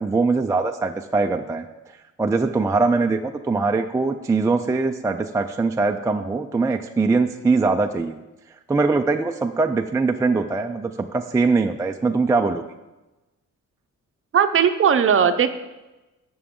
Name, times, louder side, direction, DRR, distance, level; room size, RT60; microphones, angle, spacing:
voice 1, 0.0-8.2 8.7-12.7, right 3 dB, 10° right, 5 dB, 0.3 m, -22 dB
voice 2, 14.3-15.5, right 7 dB, 45° right, 8 dB, 0.6 m, -18 dB
16.5 x 6.0 x 3.7 m, 1.1 s
wide cardioid pair, 155°, 31 cm